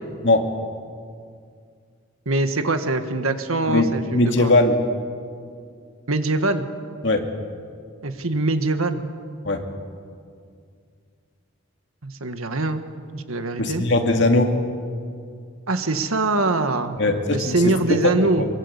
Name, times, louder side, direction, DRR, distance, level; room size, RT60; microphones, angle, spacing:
voice 1, 2.2-4.5 6.1-6.7 8.0-9.0 12.0-12.8 13.1-13.8 15.7-17.0 17.3-18.5, right 2 dB, 80° right, 8 dB, 1.7 m, -23 dB
voice 2, 3.7-4.8 7.0-7.2 9.4-9.6 13.6-14.6 17.0-17.6 17.9-18.1 18.4-18.5, left 2 dB, 55° left, 4 dB, 2.4 m, -19 dB
24.0 x 23.0 x 8.3 m, 2.2 s
head